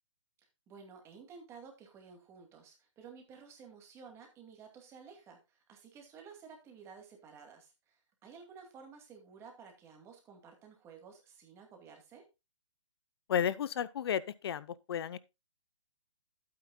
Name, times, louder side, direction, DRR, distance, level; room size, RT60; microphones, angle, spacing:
voice 1, 0.7-12.3, right 6 dB, 15° right, 2.3 m, -53 dB
voice 2, 13.3-15.2, left 8 dB, 50° left, 0.7 m, -33 dB
12.0 x 8.8 x 2.3 m
hypercardioid pair, 145°, 16 cm